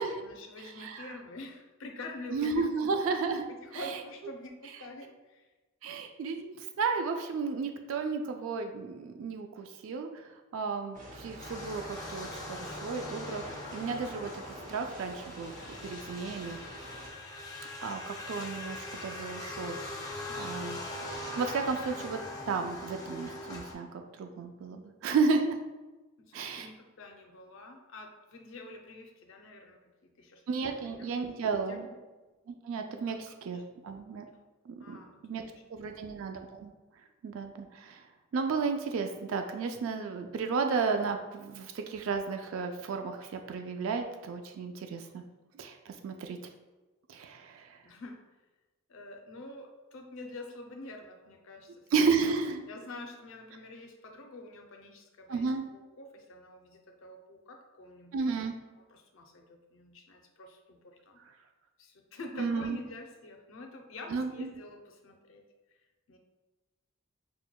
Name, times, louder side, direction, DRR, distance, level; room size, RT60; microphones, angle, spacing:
voice 1, 0.0-2.9 3.5-5.4 20.3-20.7 26.3-30.4 30.8-31.1 31.5-32.0 33.1-33.6 34.8-36.0 47.8-48.2 48.9-51.9 52.7-58.4 58.9-61.2 61.8-65.4 66.1-66.2, left 2 dB, 65° left, 3 dB, 0.5 m, -47 dB
voice 2, 0.8-1.2 2.3-3.5 3.7-4.0 5.8-13.4 13.7-14.4 14.7-15.5 15.8-16.6 17.8-19.8 20.4-20.8 21.3-22.2 22.5-25.6 26.3-26.7 30.5-31.9 32.5-34.3 34.7-35.0 35.2-35.4 35.7-36.7 37.2-38.1 38.3-45.2 45.6-46.4 47.1-47.8 51.9-52.6 55.3-55.7 58.1-58.5 61.2-61.3 62.4-62.8 64.1-64.6, right 4 dB, 70° right, 6 dB, 0.3 m, -33 dB
sound 1, 10.9-17.1, right 1 dB, 40° right, 0.7 m, -47 dB
sound 2, 11.4-23.7, left 2 dB, 20° left, 0.4 m, -41 dB
5.9 x 2.2 x 2.2 m, 1.2 s
head